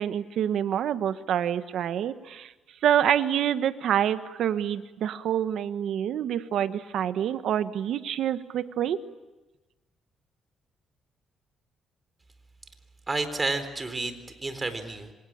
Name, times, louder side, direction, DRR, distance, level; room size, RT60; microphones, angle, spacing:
voice 1, 0.0-2.5 2.8-9.0, right 10 dB, 75° right, 11 dB, 1.4 m, -27 dB
voice 2, 13.1-15.1, right 3 dB, 25° right, 9 dB, 4.0 m, -31 dB
26.5 x 25.5 x 8.8 m, 1.1 s
cardioid pair, 90°, 0 cm